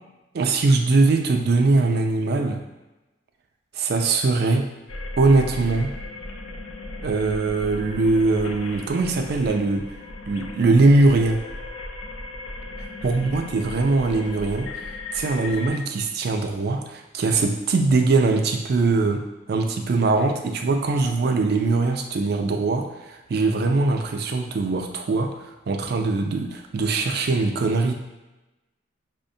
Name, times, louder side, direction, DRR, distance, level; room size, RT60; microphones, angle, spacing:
voice 1, 0.3-2.6 3.8-4.7 5.2-5.9 7.0-9.8 10.3-11.4 13.0-27.9, right 3 dB, 50° right, 4 dB, 0.4 m, -21 dB
sound 1, 4.9-15.7, left 2 dB, 80° left, 0.4 m, -36 dB
5.7 x 2.1 x 2.6 m, 1.0 s
head